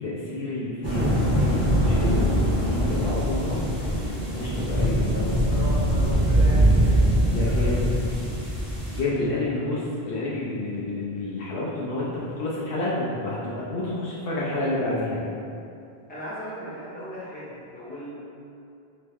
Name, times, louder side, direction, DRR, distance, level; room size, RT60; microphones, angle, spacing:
voice 1, 0.0-3.6 4.3-5.4 7.3-7.9 8.9-15.2, left 2 dB, 65° left, -7 dB, 0.8 m, -29 dB
sound 1, 0.8-9.0, right 1 dB, 25° right, 1.4 m, -22 dB
voice 2, 4.7-6.9 7.2-7.8 9.2-9.7 16.1-18.1, equal, 10° left, -10 dB, 0.9 m, -38 dB
3.2 x 3.0 x 3.4 m, 2.6 s
omnidirectional pair, 1.1 m